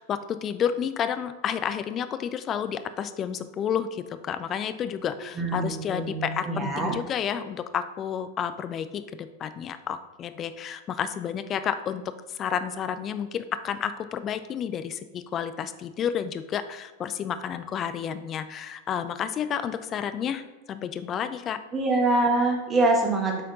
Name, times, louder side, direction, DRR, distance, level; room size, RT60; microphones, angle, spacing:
voice 1, 0.0-21.6, left 8 dB, 30° left, 11 dB, 0.4 m, -31 dB
voice 2, 5.4-6.9 21.7-23.4, right 2 dB, 20° right, 1 dB, 1.4 m, -24 dB
8.0 x 4.3 x 3.9 m, 1.1 s
figure-of-eight pair, 90°, 0 cm